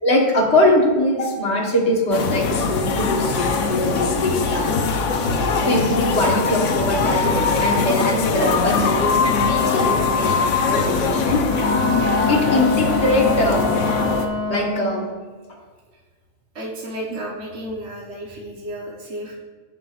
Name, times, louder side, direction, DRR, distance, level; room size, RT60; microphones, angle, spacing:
voice 1, 0.0-4.8 5.6-11.4 12.3-13.7 14.5-15.1 17.1-17.2, left 1 dB, 65° left, -1 dB, 1.9 m, -21 dB
sound 1, 2.1-14.3, left 4 dB, 80° left, 1.1 m, -21 dB
Wind instrument woodwind instrument, 11.4-15.1, left 2 dB, 15° right, 1.2 m, -26 dB
voice 2, 16.5-19.4, equal, 70° right, -3 dB, 1.6 m, -32 dB
16.5 x 6.3 x 2.5 m, 1.5 s
omnidirectional pair, 1.2 m